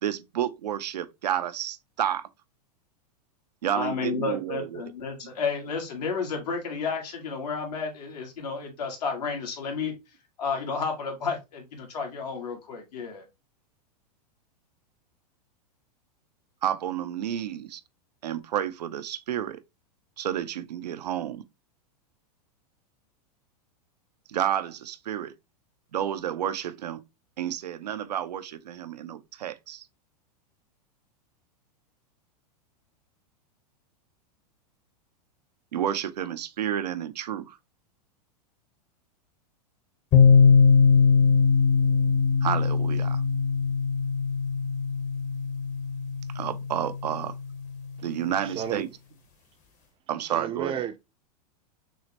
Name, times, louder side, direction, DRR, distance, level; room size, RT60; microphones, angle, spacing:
voice 1, 0.0-2.3 3.6-4.8 16.6-17.8 18.2-19.6 20.2-21.4 24.3-25.3 25.9-27.0 27.4-29.8 35.7-37.6 42.4-43.2 46.3-47.3 48.0-48.9 50.1-50.9, right 10 dB, 90° right, 0.5 m, -30 dB
voice 2, 3.7-9.9 10.4-13.2, left 5 dB, 80° left, 1.6 m, -31 dB
sound 1, 40.1-47.8, left 5 dB, 40° left, 0.9 m, -21 dB
voice 3, 48.4-48.8 50.3-51.0, right 9 dB, 25° right, 0.5 m, -32 dB
6.0 x 2.1 x 2.8 m
hypercardioid pair, 120°, 21 cm